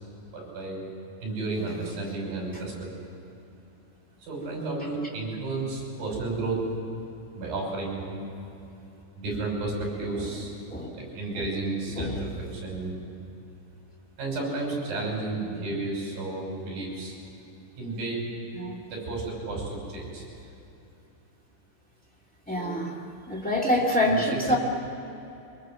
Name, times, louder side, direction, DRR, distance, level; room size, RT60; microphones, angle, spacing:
voice 1, 0.3-0.8 1.2-2.9 4.2-6.7 7.4-8.2 9.2-10.6 10.9-13.0 14.2-17.2 17.8-18.2 18.6-20.3 22.5-22.8 24.1-24.2 24.5-24.6, right 2 dB, 50° right, -1 dB, 7.5 m, -32 dB
voice 2, 18.5-18.9 22.5-23.0 23.3-24.6, left 1 dB, 5° left, -3 dB, 0.6 m, -26 dB
24.0 x 21.5 x 7.8 m, 2.9 s
omnidirectional pair, 5.4 m